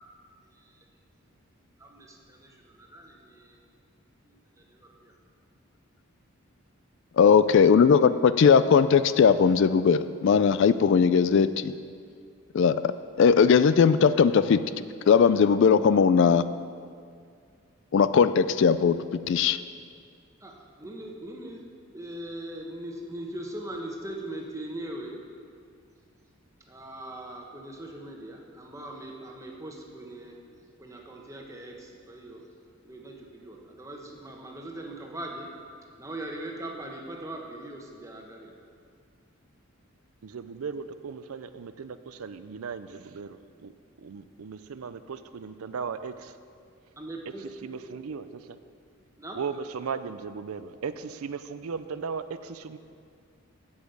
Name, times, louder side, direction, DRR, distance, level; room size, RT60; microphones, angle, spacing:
voice 1, 0.5-0.8 1.8-3.6 4.2-5.1 20.4-21.6 21.9-25.2 26.7-30.4 30.8-32.4 32.8-35.5 36.0-38.5 47.0-48.3 49.2-49.4, right 1 dB, 15° right, 0 dB, 1.1 m, -40 dB
voice 2, 7.2-11.7 12.5-12.8 13.2-14.6 15.1-16.4 17.9-19.0 19.3-19.6, left 6 dB, 55° left, 14 dB, 0.3 m, -19 dB
voice 3, 40.2-43.7 44.0-46.3 47.4-48.3 49.3-52.8, right 5 dB, 80° right, 12 dB, 0.5 m, -37 dB
8.5 x 7.2 x 8.0 m, 2.2 s
head